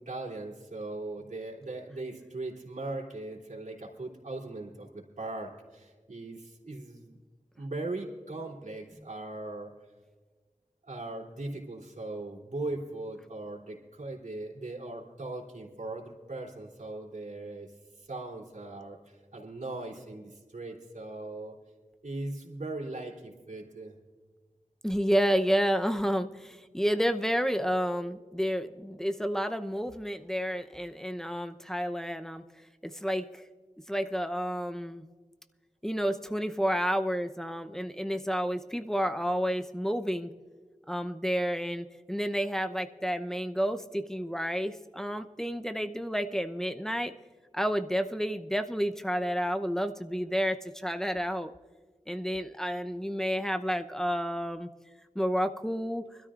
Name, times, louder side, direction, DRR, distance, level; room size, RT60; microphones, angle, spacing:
voice 1, 0.0-7.2 7.6-9.7 10.8-17.7 18.0-21.6 22.0-24.0, right 2 dB, 70° right, -3 dB, 3.3 m, -39 dB
voice 2, 24.8-32.4 32.8-33.4 33.9-35.1 35.8-40.3 40.9-47.1 47.5-51.5 52.1-54.7 55.1-56.0, equal, 5° left, 8 dB, 0.8 m, -30 dB
24.5 x 13.0 x 2.5 m, 1.4 s
wide cardioid pair, 50°, 13 cm